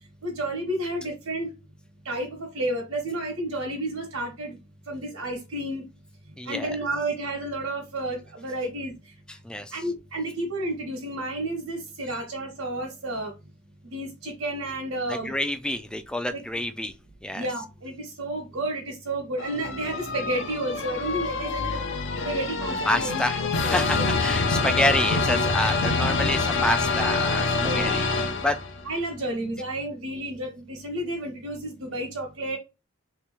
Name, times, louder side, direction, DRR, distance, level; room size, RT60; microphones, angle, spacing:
voice 1, 0.2-1.5 2.0-4.6 4.9-5.8 6.4-9.1 9.7-13.3 13.8-15.4 16.3-16.4 17.3-21.8 22.2-23.2 23.6-24.0 27.6-27.9 28.8-32.6, right 1 dB, 80° right, 1.1 m, -31 dB
voice 2, 6.4-6.7 9.4-9.7 15.1-16.9 17.2-17.5 22.9-28.1 28.4-28.6, left 1 dB, 5° left, 0.3 m, -27 dB
sound 1, 19.4-28.9, left 3 dB, 60° left, 0.7 m, -26 dB
3.2 x 3.0 x 3.4 m
head